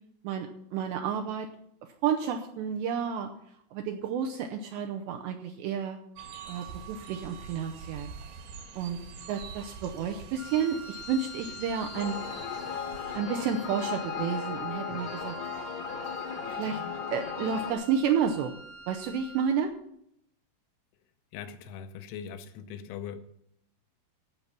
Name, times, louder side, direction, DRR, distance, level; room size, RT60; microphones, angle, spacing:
voice 1, 0.2-1.5 2.0-3.3 3.7-6.0 6.5-8.1 8.8-9.0 9.3-12.2 13.1-15.4 16.5-16.8 17.1-18.5 18.9-19.7, right 7 dB, 80° right, 4 dB, 2.6 m, -31 dB
sound 1, 6.2-13.2, right 6 dB, 65° right, 3.0 m, -45 dB
Wind instrument woodwind instrument, 10.4-19.6, right 1 dB, 30° left, 1.0 m, -46 dB
sound 2, 11.9-17.7, left 7 dB, 65° left, 1.8 m, -36 dB
voice 2, 21.3-23.2, left 8 dB, 80° left, 9 dB, 3.1 m, -40 dB
15.5 x 5.9 x 6.8 m, 0.74 s
omnidirectional pair, 5.9 m